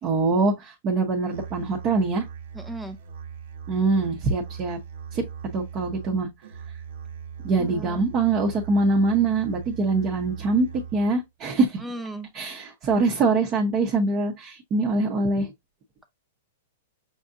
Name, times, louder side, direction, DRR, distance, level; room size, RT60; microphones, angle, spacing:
voice 1, 0.0-2.3 3.7-4.8 5.1-5.2 5.5-6.3 7.4-11.8 12.3-15.5, right 3 dB, 30° right, 0.9 m, -23 dB
Musical instrument, 1.3-11.2, right 7 dB, 65° right, 1.0 m, -40 dB
voice 2, 2.5-3.0 7.6-8.0 11.8-12.3, right 1 dB, 5° right, 0.6 m, -36 dB
6.2 x 2.6 x 2.5 m
hypercardioid pair, 145°, 0 cm